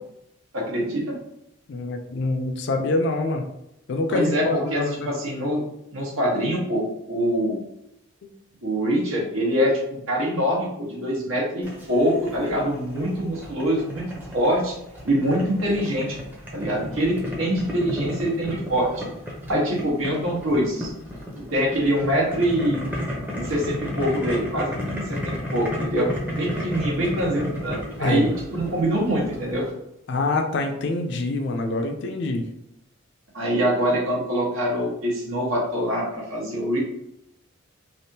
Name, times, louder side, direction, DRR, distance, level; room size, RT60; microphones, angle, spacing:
voice 1, 0.5-1.1 4.1-4.5 4.7-5.6 5.9-7.6 8.6-14.8 15.0-16.2 16.5-18.9 19.5-20.9 21.5-22.8 23.3-29.6 33.3-36.8, equal, 80° right, -4 dB, 1.1 m, -24 dB
voice 2, 1.7-3.5 3.9-5.1 8.2-8.3 28.0-28.3 30.1-32.4, left 2 dB, 55° left, 4 dB, 0.4 m, -25 dB
Boiling, 11.6-29.7, equal, 10° right, 0.6 m, -33 dB
3.4 x 2.4 x 2.7 m, 0.81 s
head